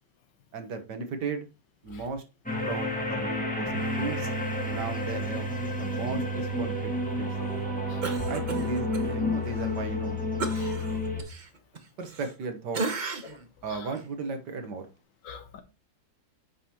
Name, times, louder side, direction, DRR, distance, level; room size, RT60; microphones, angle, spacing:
voice 1, 0.5-1.5 1.8-2.2 2.6-4.3 4.6-5.5 5.8-6.9 7.4-7.5 8.3-10.2 12.0-12.9 13.6-14.9, right 4 dB, 65° right, 1.7 m, -35 dB
sound 1, 2.5-11.2, left 1 dB, 5° left, 1.5 m, -30 dB
Cough, 8.0-9.1 9.4-9.6 10.4-12.4 12.7-13.5 13.9-14.1, right 3 dB, 45° right, 0.6 m, -35 dB
voice 2, 15.2-15.6, left 7 dB, 65° left, 1.6 m, -42 dB
9.4 x 5.4 x 2.9 m
omnidirectional pair, 2.1 m